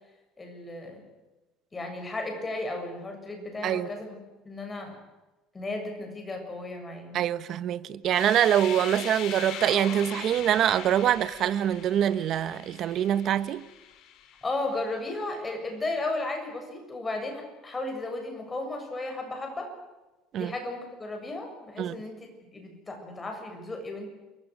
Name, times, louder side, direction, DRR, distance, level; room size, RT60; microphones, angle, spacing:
voice 1, 0.4-1.0 1.7-4.2 4.4-5.0 5.5-7.3 14.4-19.7 20.3-24.1, left 2 dB, 15° left, 7.3 m, -34 dB
voice 2, 7.1-13.7 20.3-20.5 21.8-22.0, right 10 dB, 45° right, 1.2 m, -25 dB
sound 1, 8.0-14.9, left 9 dB, 60° left, 4.3 m, -41 dB
28.0 x 23.5 x 6.5 m
cardioid pair, 145°, 0 cm